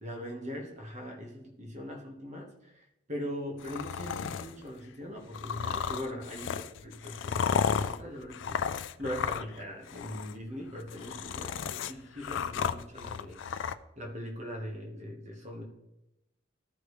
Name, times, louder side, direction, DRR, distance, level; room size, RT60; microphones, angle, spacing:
voice 1, 0.0-13.4 14.0-15.6, equal, 35° right, 0 dB, 1.4 m, -41 dB
sound 1, 3.6-4.5 5.3-9.6 9.9-10.3 10.8-13.7, left 7 dB, 65° left, 0.4 m, -33 dB
14.0 x 5.0 x 3.2 m, 0.92 s
head